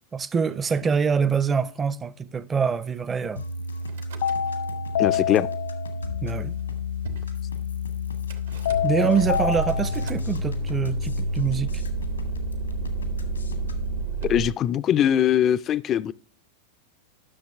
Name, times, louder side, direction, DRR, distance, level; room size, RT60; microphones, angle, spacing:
voice 1, 0.1-3.4 6.2-6.6 8.8-11.8, right 6 dB, 20° right, 0.5 m, -25 dB
sound 1, 3.4-14.0, left 3 dB, 85° left, 1.3 m, -31 dB
Car / Engine starting / Idling, 3.9-4.7 4.9-5.7 6.4-6.5 6.6-6.7 7.1-7.3 8.3-14.5, right 8 dB, 75° right, 1.2 m, -33 dB
sound 2, 4.2-6.1 8.7-10.1, left 9 dB, 70° left, 0.8 m, -27 dB
voice 2, 5.0-5.5 14.2-16.1, left 10 dB, 35° left, 0.3 m, -21 dB
11.0 x 6.4 x 3.4 m
figure-of-eight pair, 90°, 0 cm